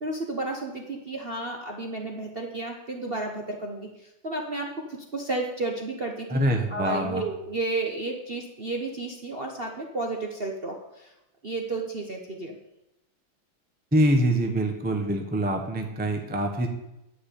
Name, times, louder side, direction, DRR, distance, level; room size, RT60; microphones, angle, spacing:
voice 1, 0.0-6.4 6.7-11.1 11.4-12.6, right 2 dB, 40° right, 1 dB, 0.9 m, -32 dB
voice 2, 6.3-7.2 13.9-16.7, right 1 dB, 5° right, 3 dB, 0.7 m, -24 dB
10.0 x 6.0 x 8.5 m, 0.92 s
omnidirectional pair, 2.4 m